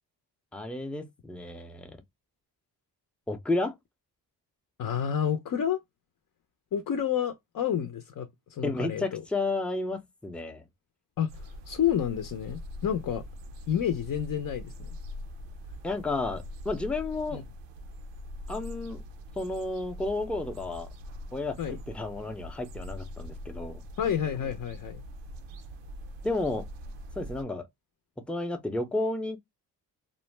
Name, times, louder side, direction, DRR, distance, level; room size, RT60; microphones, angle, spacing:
voice 1, 0.5-2.0 3.3-3.8 8.6-10.6 15.8-17.4 18.5-19.0 19.4-20.9 21.3-23.8 26.2-26.7 27.2-27.7 28.2-29.4, left 2 dB, 5° left, 0.5 m, -32 dB
voice 2, 4.8-5.8 6.7-9.2 11.2-13.2 13.7-14.9 17.3-17.4 21.6-21.8 24.0-25.0, left 9 dB, 50° left, 0.5 m, -30 dB
sound 1, 11.3-27.4, left 1 dB, 85° right, 0.6 m, -43 dB
2.5 x 2.1 x 3.1 m
cardioid pair, 70°, 42 cm